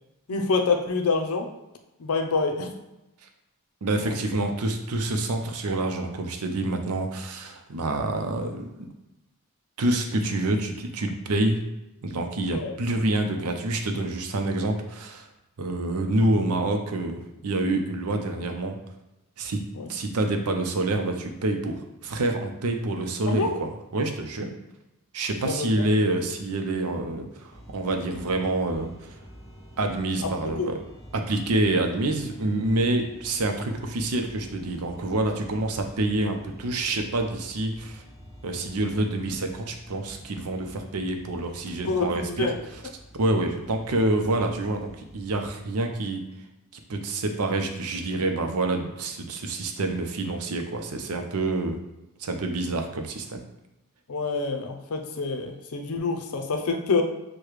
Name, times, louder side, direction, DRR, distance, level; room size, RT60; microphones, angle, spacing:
voice 1, 0.3-1.5 2.0-2.8 4.0-4.4 12.5-12.7 19.7-19.9 23.3-23.6 25.4-25.7 30.4-30.7 41.8-42.6 54.1-57.0, left 4 dB, 80° left, 4 dB, 0.6 m, -27 dB
voice 2, 3.8-8.9 9.8-11.7 12.0-15.3 15.6-18.8 19.4-24.5 25.1-29.2 29.8-30.7 31.1-38.0 38.4-42.5 43.1-46.3 46.9-51.8 52.2-53.4, right 2 dB, 85° right, 4 dB, 0.6 m, -27 dB
sound 1, 27.5-45.5, equal, 20° left, 0.8 m, -48 dB
6.5 x 2.2 x 3.1 m, 0.95 s
head